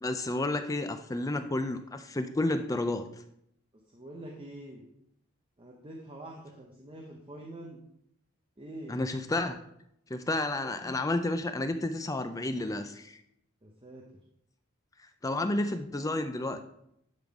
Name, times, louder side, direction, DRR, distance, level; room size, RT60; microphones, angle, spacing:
voice 1, 0.0-3.1 8.9-9.6 10.1-13.2 15.2-16.6, left 2 dB, 15° left, 9 dB, 0.3 m, -31 dB
voice 2, 3.9-4.8 5.6-7.8 8.6-9.0 10.8-10.9 13.6-14.1, right 1 dB, 25° right, -1 dB, 0.9 m, -45 dB
10.5 x 3.8 x 4.8 m, 0.76 s
head